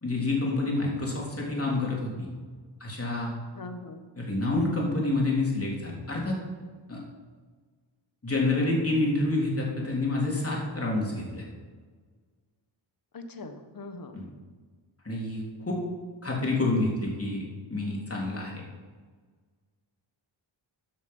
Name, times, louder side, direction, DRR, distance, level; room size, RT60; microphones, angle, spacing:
voice 1, 0.0-2.3 2.8-3.3 4.1-6.4 6.9-7.0 8.2-11.4 14.1-14.2 15.0-15.8 16.2-17.4 17.7-18.6, left 2 dB, 30° left, -3 dB, 3.3 m, -28 dB
voice 2, 3.5-4.0 13.1-14.2, left 2 dB, 45° left, 7 dB, 1.3 m, -41 dB
14.0 x 7.4 x 5.5 m, 1.5 s
wide cardioid pair, 120°, 47 cm